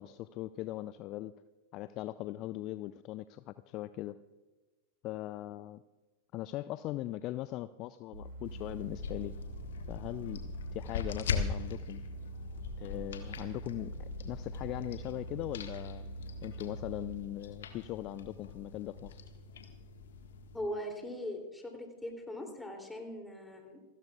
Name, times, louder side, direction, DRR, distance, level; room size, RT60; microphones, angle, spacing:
voice 1, 0.0-1.3 1.7-4.2 5.0-5.8 6.3-9.4 9.9-10.4 10.7-12.0 12.8-16.0 16.4-19.2, left 15 dB, 40° left, 15 dB, 0.4 m, -40 dB
sound 1, 8.1-17.2, right 2 dB, 60° right, 4.1 m, -44 dB
sound 2, 8.4-20.6, left 5 dB, 60° left, 1.6 m, -41 dB
voice 2, 20.5-23.8, left 1 dB, 5° left, 3 dB, 3.0 m, -40 dB
27.5 x 13.5 x 2.4 m, 1.2 s
figure-of-eight pair, 90°, 0 cm